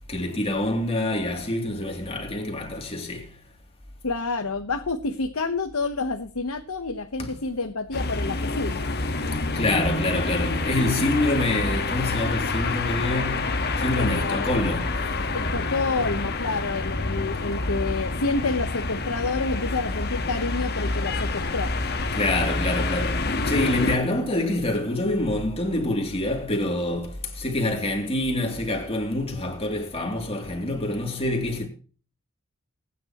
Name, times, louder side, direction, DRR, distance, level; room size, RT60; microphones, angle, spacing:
voice 1, 0.1-3.3 7.2-7.3 9.5-15.0 17.4-17.6 22.1-31.7, left 1 dB, 30° left, 2.9 m, -26 dB
voice 2, 4.0-8.9 13.9-14.6 15.3-21.7, left 3 dB, 85° left, 1.1 m, -29 dB
sound 1, 7.9-24.0, left 2 dB, 50° left, 1.5 m, -27 dB
21.0 x 9.8 x 3.1 m
head